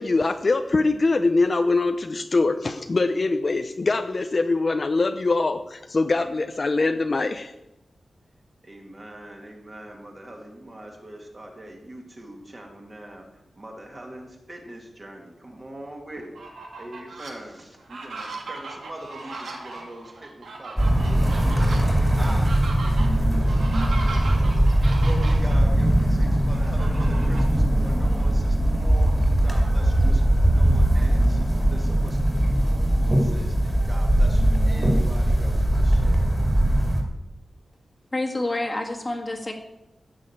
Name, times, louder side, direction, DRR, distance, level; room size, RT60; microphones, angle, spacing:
voice 1, 0.0-7.5, left 3 dB, 35° left, 8 dB, 0.6 m, -23 dB
voice 2, 8.6-13.3 13.6-21.9 22.2-24.6 25.0-29.2 29.4-36.3, right 1 dB, 25° right, 1 dB, 2.6 m, -42 dB
Fowl, 16.2-17.3 17.8-25.6 26.5-27.6 28.0-28.1 28.5-30.2, right 3 dB, 90° right, 3.2 m, -38 dB
sound 1, 20.8-37.0, right 1 dB, ahead, 2.6 m, -20 dB
voice 3, 38.1-39.5, left 2 dB, 20° left, 2 dB, 1.7 m, -28 dB
15.5 x 6.4 x 8.9 m, 0.95 s
wide cardioid pair, 180°, 0 cm